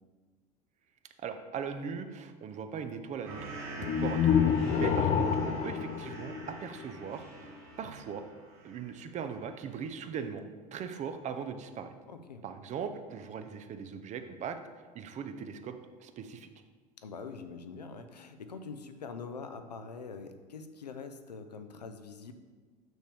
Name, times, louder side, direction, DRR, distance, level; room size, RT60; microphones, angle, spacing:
voice 1, 1.2-7.5 7.8-8.2 8.6-10.5 10.7-11.9 12.4-14.6 14.9-15.7 16.0-16.5, right 6 dB, 35° right, 8 dB, 0.6 m, -39 dB
sound 1, 3.2-9.0 9.3-9.8, right 2 dB, 60° right, 1.8 m, -45 dB
sound 2, 3.8-7.0, left 7 dB, 35° left, 0.5 m, -28 dB
voice 2, 12.1-12.4 17.0-22.3, left 5 dB, 85° left, 8 dB, 0.5 m, -44 dB
6.6 x 6.2 x 3.4 m, 1.4 s
figure-of-eight pair, 70°, 20 cm